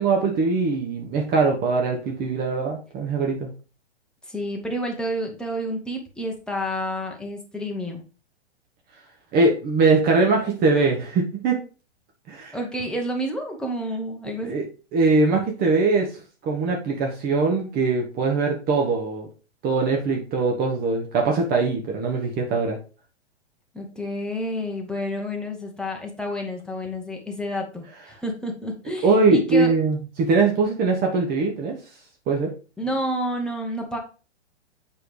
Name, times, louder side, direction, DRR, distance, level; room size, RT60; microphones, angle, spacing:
voice 1, 0.0-3.5 9.3-11.6 12.3-12.6 14.4-14.6 14.9-16.1 16.4-19.3 19.6-22.8 29.0-31.8 32.3-32.5, right 3 dB, 25° right, 1 dB, 1.2 m, -21 dB
voice 2, 4.3-8.0 12.5-14.6 23.7-29.7 32.8-34.0, equal, ahead, 0 dB, 1.3 m, -29 dB
7.9 x 4.4 x 3.3 m, 0.35 s
figure-of-eight pair, 110°, 34 cm